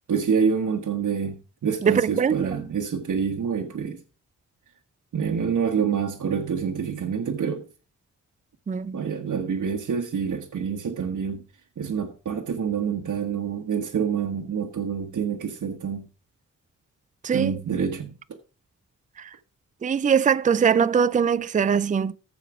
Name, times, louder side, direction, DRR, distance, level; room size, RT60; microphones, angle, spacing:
voice 1, 0.1-4.0 5.1-7.6 8.9-11.4 11.8-16.1 17.3-18.1, right 6 dB, 60° right, 1.4 m, -27 dB
voice 2, 1.8-2.4 8.7-9.0 17.2-17.5 19.8-22.1, right 7 dB, 25° right, 0.4 m, -21 dB
15.0 x 5.1 x 4.9 m
cardioid pair, 105°, 33 cm